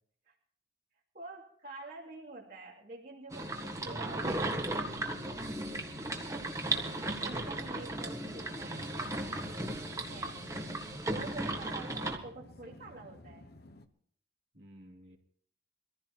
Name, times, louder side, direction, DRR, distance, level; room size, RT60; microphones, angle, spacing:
voice 1, 1.1-5.0 6.3-10.5 11.0-13.5, right 2 dB, 45° right, -5 dB, 2.8 m, -48 dB
sound 1, 3.3-12.2, right 2 dB, 15° right, 1.5 m, -36 dB
sound 2, 3.8-13.9, left 1 dB, 50° left, 1.1 m, -52 dB
voice 2, 3.8-5.0 14.5-15.2, right 2 dB, 65° right, -1 dB, 3.2 m, -46 dB
24.0 x 15.0 x 3.0 m, 0.63 s
head